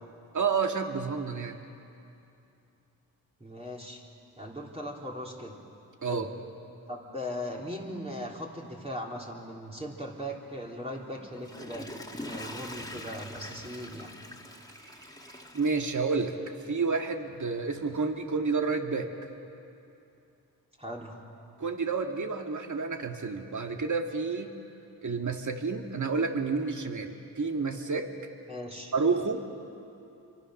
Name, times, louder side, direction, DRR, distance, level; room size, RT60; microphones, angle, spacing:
voice 1, 0.3-1.6 6.0-6.3 14.8-15.0 15.3-19.1 21.6-24.5 25.0-28.1 28.9-29.5, right 4 dB, 50° right, 4 dB, 2.2 m, -30 dB
voice 2, 3.4-4.0 4.4-5.6 6.1-6.3 6.9-11.9 12.2-14.1 20.8-21.2 28.5-28.9, equal, 15° right, -2 dB, 3.6 m, -39 dB
Water / Toilet flush, 11.2-16.5 17.0-17.1, left 1 dB, 10° left, 2.7 m, -43 dB
27.0 x 24.0 x 6.6 m, 2.7 s
cardioid pair, 55°, 38 cm